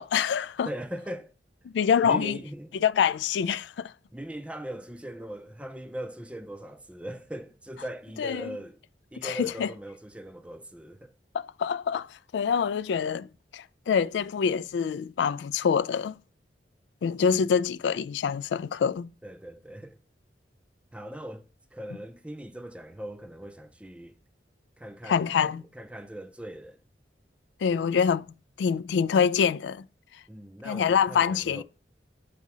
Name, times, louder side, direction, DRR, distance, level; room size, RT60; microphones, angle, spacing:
voice 1, 0.0-0.7 1.7-2.4 2.8-3.9 8.2-8.6 9.2-9.7 11.3-13.3 13.5-16.2 17.0-19.1 25.1-25.6 27.6-28.3 28.6-29.8 30.6-31.6, left 7 dB, 75° left, 0.3 m, -25 dB
voice 2, 0.6-1.3 2.0-2.7 4.1-8.8 9.1-11.1 19.2-20.0 20.9-21.4 21.7-24.2 24.8-25.3 25.7-26.8 30.3-31.6, right 1 dB, 5° right, 0.5 m, -40 dB
8.2 x 2.8 x 6.0 m
head